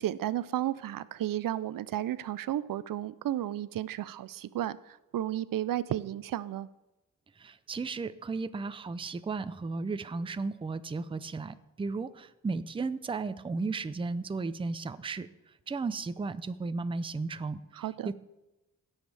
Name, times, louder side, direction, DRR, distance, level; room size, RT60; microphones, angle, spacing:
voice 1, 0.0-6.7 17.8-18.1, right 12 dB, 75° right, 17 dB, 0.5 m, -33 dB
voice 2, 7.4-15.3 15.7-18.1, right 4 dB, 15° right, 13 dB, 0.4 m, -35 dB
16.5 x 7.2 x 3.3 m, 1.0 s
wide cardioid pair, 110°, 34 cm